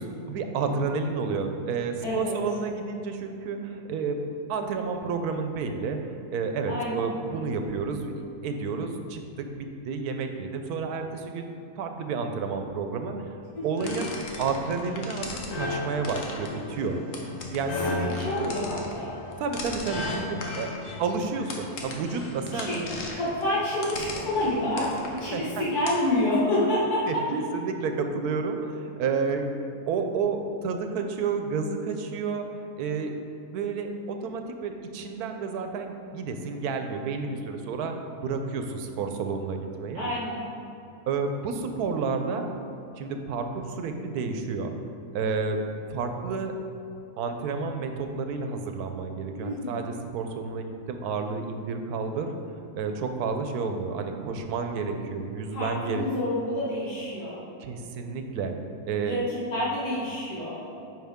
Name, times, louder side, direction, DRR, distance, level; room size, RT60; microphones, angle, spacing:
voice 1, 0.0-4.2 4.5-8.1 8.4-13.4 13.6-14.1 14.4-17.0 17.5-18.1 19.4-20.7 21.0-22.9 25.3-25.6 27.1-33.1 33.5-40.1 41.1-42.5 43.0-44.7 45.1-45.6 45.9-46.5 47.2-52.3 52.8-56.1 57.6-58.5 58.8-59.2, right 4 dB, 90° right, 6 dB, 1.2 m, -30 dB
voice 2, 2.0-2.3 6.7-7.1 13.5-13.9 17.8-19.2 22.5-27.5 39.9-40.4 49.4-49.9 55.5-57.4 59.0-60.6, left 1 dB, 90° left, -8 dB, 2.0 m, -28 dB
sound 1, 13.8-26.1, left 2 dB, 60° left, 1.2 m, -35 dB
9.4 x 4.7 x 3.6 m, 2.7 s
omnidirectional pair, 1.6 m